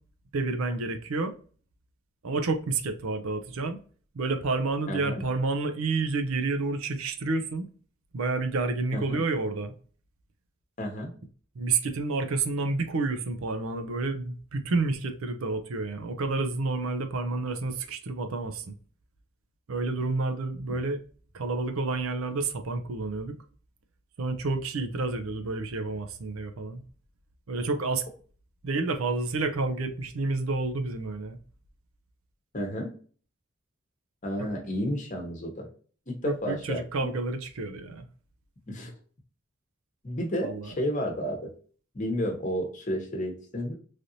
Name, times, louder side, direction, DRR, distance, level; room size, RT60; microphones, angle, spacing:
voice 1, 0.3-1.3 2.2-3.8 4.1-7.7 8.1-9.7 11.6-18.7 19.7-21.0 21.3-23.4 24.2-26.8 27.5-28.0 28.6-31.4 34.4-34.5 36.2-38.1 40.4-40.7, right 3 dB, 85° right, 0.5 m, -29 dB
voice 2, 4.9-5.2 8.9-9.2 10.8-11.1 20.7-20.8 32.5-32.9 34.2-35.7 36.1-36.8 38.7-38.9 40.0-41.5 41.9-43.7, equal, 35° left, 1.0 m, -31 dB
3.3 x 2.6 x 2.6 m
head